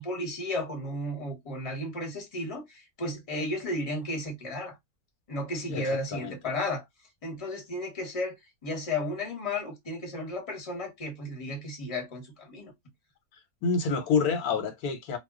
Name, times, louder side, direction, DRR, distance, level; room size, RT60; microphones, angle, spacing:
voice 1, 0.0-4.7 5.3-6.8 7.2-8.4 8.6-12.7, left 1 dB, 25° left, 1.0 m, -33 dB
voice 2, 5.7-6.4 13.6-15.2, left 5 dB, 85° left, 1.2 m, -28 dB
2.3 x 2.2 x 3.5 m
omnidirectional pair, 1.5 m